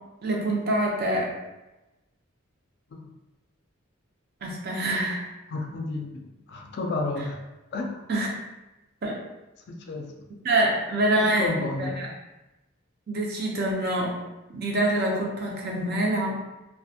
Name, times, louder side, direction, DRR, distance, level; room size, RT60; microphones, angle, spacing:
voice 1, 0.2-1.3 4.4-5.2 8.1-8.3 9.0-9.2 10.4-12.1 13.1-14.2 14.5-16.4, right 1 dB, 50° right, -2 dB, 0.5 m, -25 dB
voice 2, 5.5-6.2 6.5-7.4 7.7-8.1 9.7-10.1 11.1-12.1, left 2 dB, 50° left, 1 dB, 0.3 m, -31 dB
2.5 x 2.2 x 2.6 m, 1.0 s
head